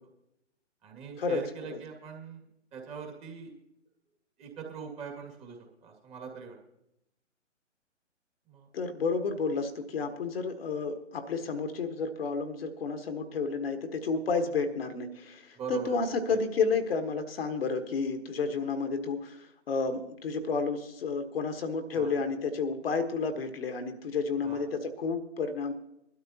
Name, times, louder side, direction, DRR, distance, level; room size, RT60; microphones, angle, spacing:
voice 1, 0.8-2.4 2.7-3.5 4.4-6.6 8.5-8.7 15.5-16.0 16.3-16.4 21.9-22.2 24.4-24.7, right 6 dB, 15° right, 1 dB, 2.2 m, -42 dB
voice 2, 8.7-25.7, left 4 dB, 50° left, 7 dB, 1.5 m, -31 dB
21.0 x 12.5 x 2.8 m, 0.83 s
figure-of-eight pair, 135°, 37 cm